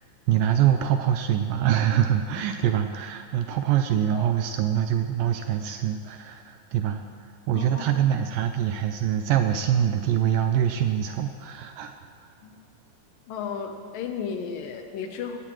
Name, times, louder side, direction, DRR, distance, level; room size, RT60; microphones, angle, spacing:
voice 1, 0.3-7.0 7.5-12.0, right 10 dB, 80° right, 7 dB, 2.1 m, -24 dB
voice 2, 7.6-8.0 12.4-12.5 13.3-15.4, left 6 dB, 75° left, 5 dB, 2.4 m, -34 dB
18.0 x 16.0 x 3.1 m, 2.5 s
omnidirectional pair, 4.4 m